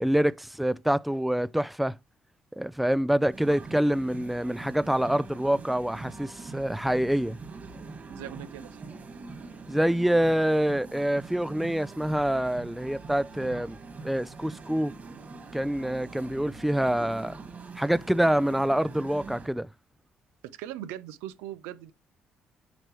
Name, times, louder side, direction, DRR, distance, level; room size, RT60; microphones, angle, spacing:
voice 1, 0.0-2.0 2.6-7.4 9.7-13.8 14.0-14.9 15.5-17.4 17.8-19.7, right 1 dB, 5° right, 0.4 m, -26 dB
sound 1, 3.3-19.5, right 4 dB, 40° right, 2.4 m, -43 dB
voice 2, 8.1-8.8 20.4-21.9, right 12 dB, 85° right, 0.6 m, -40 dB
7.7 x 5.0 x 3.2 m
supercardioid pair, 60°, 4 cm